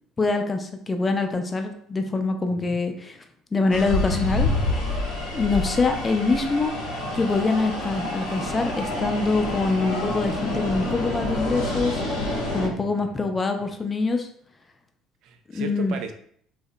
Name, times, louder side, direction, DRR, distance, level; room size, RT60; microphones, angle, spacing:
voice 1, 0.2-3.2 3.5-4.5 5.3-6.7 7.1-12.0 12.5-14.3 15.5-15.9, left 3 dB, 30° left, 5 dB, 0.4 m, -24 dB
voice 2, 2.5-2.8 12.9-13.3 15.2-16.1, right 6 dB, 65° right, 7 dB, 0.3 m, -36 dB
sound 1, 3.7-12.7, left 2 dB, 80° left, 0.7 m, -28 dB
2.7 x 2.0 x 2.4 m, 0.64 s
hypercardioid pair, 65°, 0 cm